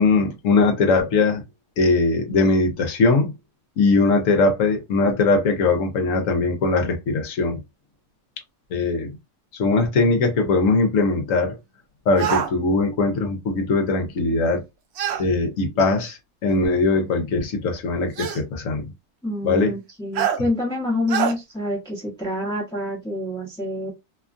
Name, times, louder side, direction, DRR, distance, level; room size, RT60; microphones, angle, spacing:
voice 1, 0.0-1.4 1.8-3.3 3.8-7.6 8.7-9.2 9.5-11.6 12.1-14.6 15.2-18.9 19.4-19.7, left 3 dB, 65° left, 1.0 m, -20 dB
sound 1, 12.2-12.5 15.0-15.2 16.5-16.6 18.2-18.4 20.2-20.4 21.1-21.3, right 9 dB, 70° right, 0.6 m, -24 dB
voice 2, 19.2-23.9, left 1 dB, 5° left, 0.7 m, -27 dB
2.9 x 2.3 x 2.5 m
omnidirectional pair, 1.6 m